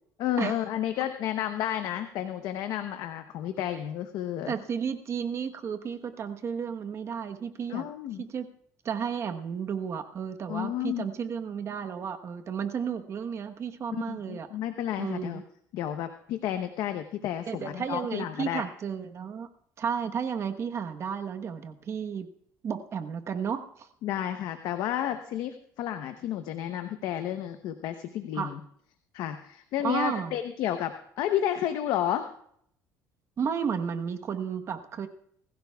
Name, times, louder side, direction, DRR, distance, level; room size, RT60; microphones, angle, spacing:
voice 1, 0.2-4.5 7.7-8.2 10.5-11.1 14.0-15.4 15.7-18.6 24.0-28.6 29.1-32.3, left 11 dB, 70° left, 8 dB, 0.9 m, -31 dB
voice 2, 4.5-7.9 8.2-8.5 8.8-14.5 15.0-15.4 17.5-19.5 19.8-22.3 22.6-23.9 28.3-28.5 29.8-30.4 33.4-35.1, right 7 dB, 45° right, 7 dB, 1.1 m, -33 dB
21.5 x 15.5 x 2.3 m, 0.66 s
cardioid pair, 120°, 7 cm